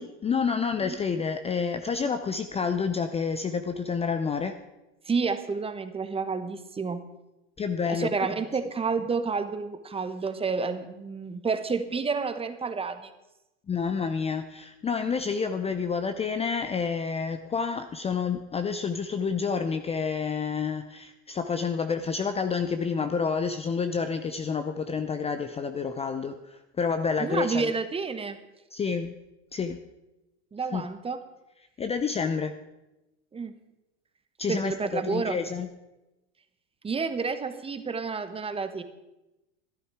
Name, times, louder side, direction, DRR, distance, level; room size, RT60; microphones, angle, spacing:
voice 1, 0.0-4.6 7.6-8.1 13.7-27.7 28.7-29.2 29.5-29.8 30.7-30.8 31.8-32.5 34.4-35.7, left 5 dB, 20° left, 9 dB, 0.6 m, -29 dB
voice 2, 5.0-7.0 7.8-13.1 27.2-28.4 30.5-31.2 33.3-33.5 34.5-35.4 36.8-38.8, right 5 dB, 15° right, 10 dB, 1.0 m, -30 dB
13.0 x 11.0 x 4.8 m, 0.98 s
hypercardioid pair, 95°, 35 cm